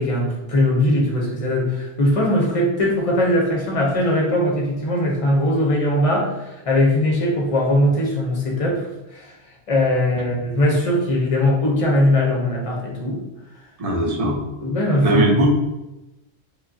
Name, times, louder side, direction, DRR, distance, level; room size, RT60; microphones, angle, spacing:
voice 1, 0.0-9.3 9.7-13.2 14.6-15.2, left 1 dB, 35° left, -2 dB, 0.8 m, -20 dB
voice 2, 13.8-14.4 15.0-15.5, right 1 dB, 35° right, -1 dB, 0.7 m, -19 dB
4.8 x 2.2 x 2.7 m, 0.95 s
omnidirectional pair, 1.2 m